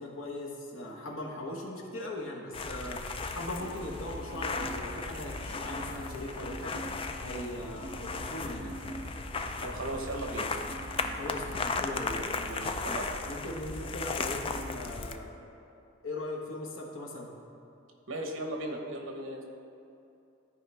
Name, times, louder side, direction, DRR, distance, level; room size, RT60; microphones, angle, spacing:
voice 1, 0.0-3.0 3.3-6.9 7.2-8.8 11.1-12.8 13.3-15.4 16.0-17.3, left 1 dB, 75° left, -1 dB, 1.3 m, -39 dB
sound 1, 2.5-15.2, left 3 dB, 25° left, 0.4 m, -36 dB
sound 2, 3.6-11.7, right 2 dB, 45° right, 0.8 m, -47 dB
voice 2, 9.6-10.5 12.4-13.1 18.1-19.4, right 1 dB, 70° right, 2 dB, 1.1 m, -37 dB
13.0 x 4.9 x 3.4 m, 2.7 s
head